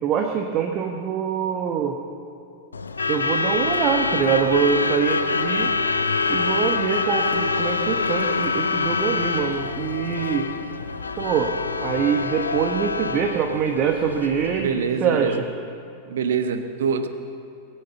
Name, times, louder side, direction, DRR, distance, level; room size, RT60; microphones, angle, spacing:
voice 1, 0.0-2.0 3.1-5.7 6.3-10.5 11.2-11.5 11.8-15.4, right 7 dB, 35° right, 3 dB, 1.2 m, -24 dB
Truck / Alarm, 2.7-14.7, left 4 dB, 75° left, 0.7 m, -25 dB
voice 2, 14.6-15.4 16.1-17.1, right 6 dB, 60° right, 9 dB, 1.1 m, -24 dB
22.5 x 9.1 x 7.0 m, 2.6 s
figure-of-eight pair, 90°, 0 cm